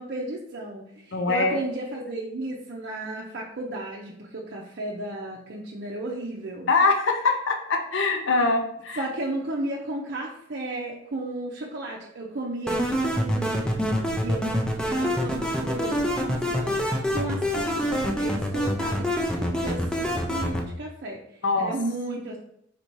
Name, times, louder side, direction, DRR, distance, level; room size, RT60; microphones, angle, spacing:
voice 1, 0.0-6.7 9.0-21.2 21.6-22.4, right 2 dB, 55° right, -4 dB, 0.6 m, -34 dB
voice 2, 1.1-1.6 6.7-9.0 21.4-21.7, left 3 dB, 65° left, 4 dB, 0.6 m, -23 dB
sound 1, 12.7-20.7, equal, 5° left, 0.4 m, -26 dB
4.3 x 2.7 x 4.5 m, 0.72 s
head